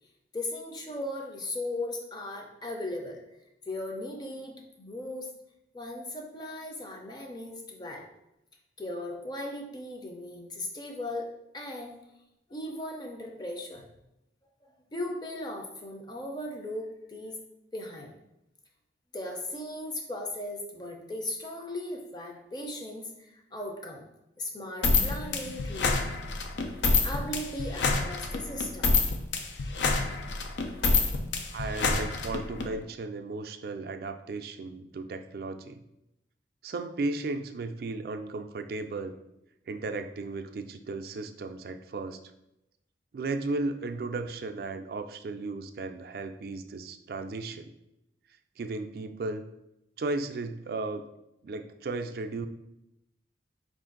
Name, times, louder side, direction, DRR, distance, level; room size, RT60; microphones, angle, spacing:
voice 1, 0.3-3.2 3.7-5.3 5.7-8.1 8.8-11.3 11.5-12.0 12.5-13.9 14.6-17.4 17.7-18.1 19.1-24.0 24.4-26.0 26.8-28.9 30.8-31.2, left 1 dB, 25° left, 2 dB, 0.5 m, -37 dB
sound 1, 24.8-32.7, left 3 dB, 80° left, 0.5 m, -27 dB
voice 2, 31.5-35.8 36.6-39.1 39.7-42.2 43.1-47.7 48.6-49.4 50.0-51.0 51.4-52.5, right 3 dB, 55° right, 7 dB, 0.3 m, -35 dB
4.5 x 2.5 x 3.8 m, 0.87 s
head